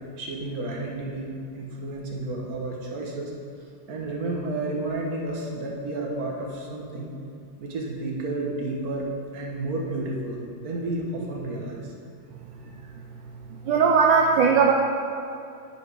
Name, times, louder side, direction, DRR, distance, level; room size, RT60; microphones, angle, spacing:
voice 1, 0.2-1.3 1.5-3.3 3.9-7.1 7.6-11.9, right 2 dB, 50° right, -1 dB, 1.5 m, -31 dB
voice 2, 13.5-14.7, right 5 dB, 75° right, 0 dB, 1.2 m, -19 dB
9.2 x 5.5 x 4.8 m, 2.5 s
omnidirectional pair, 2.3 m